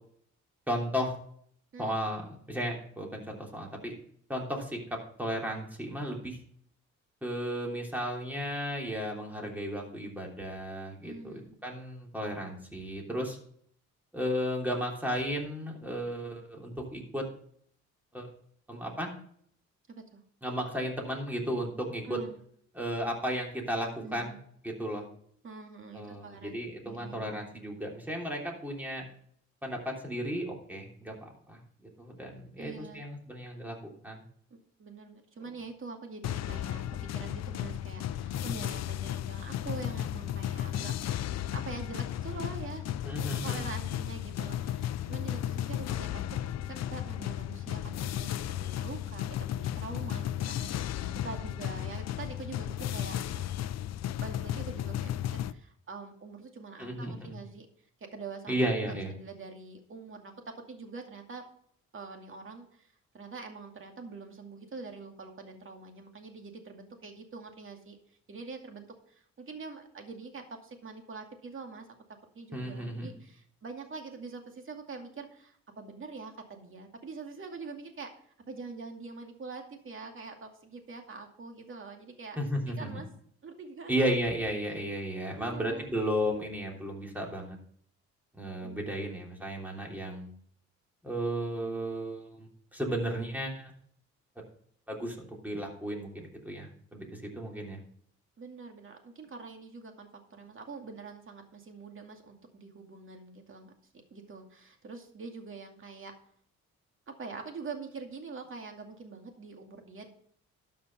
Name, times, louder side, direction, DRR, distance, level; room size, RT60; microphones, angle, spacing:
voice 1, 0.7-1.2 1.8-4.0 4.3-4.8 5.2-6.4 7.2-13.4 14.1-17.2 18.1-18.3 18.7-19.1 20.4-22.2 22.7-24.3 24.6-25.1 25.9-29.0 29.6-33.7 34.0-34.2 43.0-43.6 56.8-57.4 58.5-59.1 72.5-73.1 82.4-82.9 83.9-87.6 88.3-90.3 91.0-93.7 94.9-97.8, equal, 5° right, -1 dB, 3.3 m, -34 dB
voice 2, 11.0-11.6 19.9-20.2 22.0-22.4 24.0-24.4 25.4-26.6 26.8-27.4 32.6-33.1 34.5-36.8 37.1-40.9 41.5-42.9 43.2-46.4 46.7-48.3 48.6-53.2 54.2-57.7 58.1-61.4 61.9-68.0 68.3-71.9 72.3-78.1 78.5-82.4 82.8-83.1 83.4-84.0 85.4-85.9 88.6-89.2 92.9-93.0 98.4-103.7 104.1-106.1 107.1-110.1, right 4 dB, 40° right, 4 dB, 2.3 m, -44 dB
sound 1, 36.2-55.5, left 11 dB, 60° left, 0.5 m, -34 dB
12.5 x 5.7 x 5.4 m, 0.62 s
cardioid pair, 90°, 30 cm